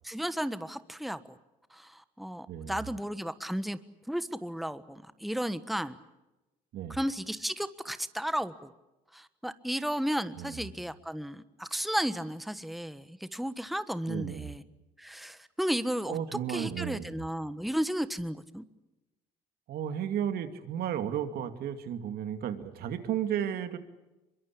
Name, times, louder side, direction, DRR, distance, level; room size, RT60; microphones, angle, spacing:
voice 1, 0.0-1.4 1.7-3.8 4.1-6.0 6.9-8.7 9.1-14.6 15.0-16.2 16.5-18.6, equal, ahead, 13 dB, 1.3 m, -34 dB
voice 2, 2.5-2.9 6.7-7.0 10.3-10.7 14.1-14.5 16.1-17.1 19.7-23.8, right 9 dB, 70° right, 8 dB, 2.5 m, -34 dB
24.5 x 22.5 x 8.5 m, 1.0 s
supercardioid pair, 75°, 16 cm